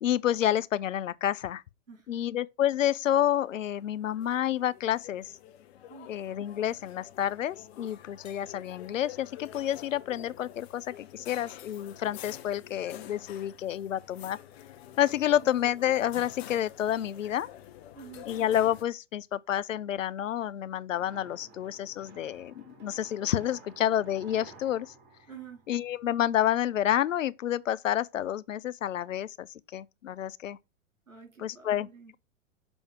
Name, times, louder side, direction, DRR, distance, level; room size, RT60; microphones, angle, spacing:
voice 1, 0.0-1.6 2.1-5.3 6.1-14.4 15.0-17.5 18.3-24.9 25.7-30.6 31.4-31.9, left 11 dB, 75° left, 0.6 m, -29 dB
voice 2, 1.9-2.2 5.9-6.1 15.2-15.5 17.9-18.3 25.3-25.7 31.1-32.1, right 6 dB, 80° right, 3.3 m, -49 dB
sound 1, 3.7-18.8, left 11 dB, 50° left, 1.2 m, -48 dB
sound 2, 20.9-26.3, right 3 dB, 40° right, 3.7 m, -53 dB
6.9 x 3.5 x 6.0 m
figure-of-eight pair, 105°, 39 cm